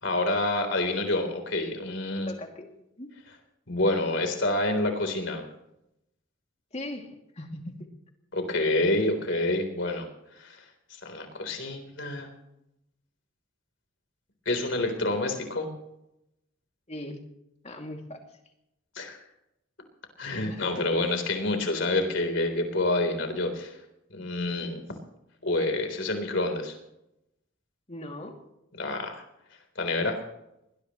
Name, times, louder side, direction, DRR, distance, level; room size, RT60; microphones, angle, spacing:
voice 1, 0.0-2.3 3.7-5.4 8.3-10.1 10.3-10.6 11.0-12.3 14.5-15.7 19.0-19.2 20.2-23.8 24.1-24.8 25.4-26.8 28.8-29.2 29.8-30.2, left 2 dB, 60° left, 5 dB, 3.8 m, -28 dB
voice 2, 2.2-2.7 3.0-3.2 6.7-7.9 16.9-17.2 17.6-18.3 20.3-21.0 27.9-28.4, left 1 dB, 35° left, 3 dB, 2.6 m, -39 dB
21.0 x 20.5 x 3.1 m, 0.84 s
head